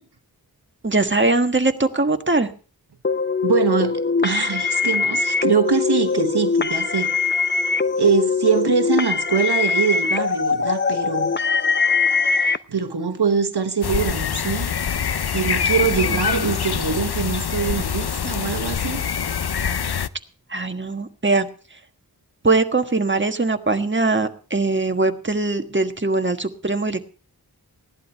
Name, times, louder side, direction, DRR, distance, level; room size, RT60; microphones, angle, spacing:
voice 1, 0.8-2.5 16.3-16.5 20.5-21.5 22.4-27.0, right 3 dB, 30° right, 1.5 m, -21 dB
sound 1, 3.0-12.6, left 5 dB, 30° left, 0.6 m, -22 dB
voice 2, 3.4-7.2 8.0-11.3 12.3-14.7 15.3-19.0, right 6 dB, 80° right, 1.2 m, -23 dB
sound 2, 5.6-12.4, left 1 dB, 50° left, 6.3 m, -48 dB
sound 3, 13.8-20.1, left 7 dB, 80° left, 0.7 m, -24 dB
16.0 x 11.0 x 4.4 m
wide cardioid pair, 40°, 39 cm